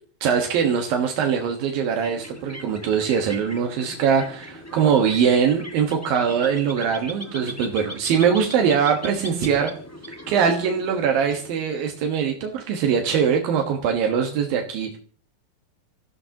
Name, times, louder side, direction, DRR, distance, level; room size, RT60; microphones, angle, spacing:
voice 1, 0.2-9.7 10.3-15.0, right 7 dB, 80° right, 3 dB, 3.1 m, -22 dB
sound 1, 1.7-12.1, left 1 dB, 15° left, 0.6 m, -39 dB
26.0 x 15.0 x 2.9 m, 0.41 s
omnidirectional pair, 4.1 m